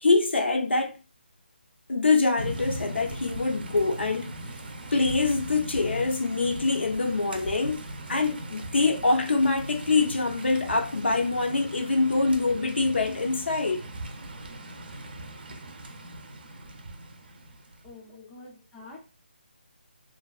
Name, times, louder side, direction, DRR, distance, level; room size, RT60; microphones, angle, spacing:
voice 1, 0.0-0.9 1.9-4.3 4.9-7.8 8.1-13.8, left 3 dB, 80° left, 0.6 m, -24 dB
sound 1, 2.4-17.9, right 1 dB, 55° right, 0.5 m, -39 dB
voice 2, 17.8-19.0, left 3 dB, 5° left, 0.4 m, -47 dB
2.4 x 2.2 x 2.3 m
figure-of-eight pair, 160°, 6 cm